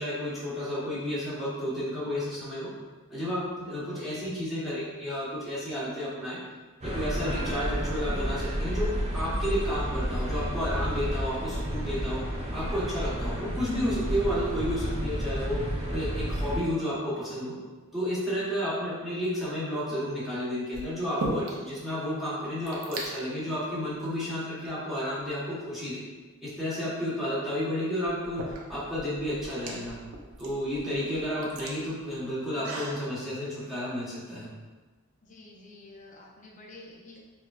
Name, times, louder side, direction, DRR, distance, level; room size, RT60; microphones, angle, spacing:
voice 1, 0.0-2.7 3.1-6.4 6.8-12.2 12.5-15.6 15.9-17.5 17.9-26.0 26.4-30.0 30.4-34.5, equal, ahead, -10 dB, 1.0 m, -31 dB
sound 1, 6.8-16.6, equal, 30° right, 0.6 m, -31 dB
sound 2, 19.5-19.9 20.7-21.8 22.1-22.2 22.4-23.1 23.9-24.0 24.6-25.5 27.2-27.3 28.0-33.0, right 2 dB, 75° right, 0.5 m, -39 dB
voice 2, 35.2-37.2, left 2 dB, 35° left, -2 dB, 0.5 m, -50 dB
4.4 x 2.2 x 2.4 m, 1.3 s
head